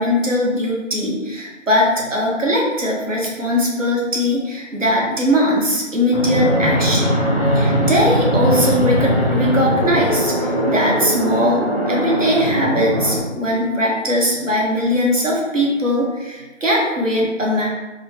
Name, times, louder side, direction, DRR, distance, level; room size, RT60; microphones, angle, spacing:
voice 1, 0.0-7.2 7.5-17.7, equal, 80° right, -3 dB, 1.3 m, -20 dB
Fixed-wing aircraft airplane, 6.1-13.2, equal, 30° right, 1.2 m, -20 dB
4.2 x 2.3 x 2.9 m, 1.1 s
figure-of-eight pair, 170°, 38 cm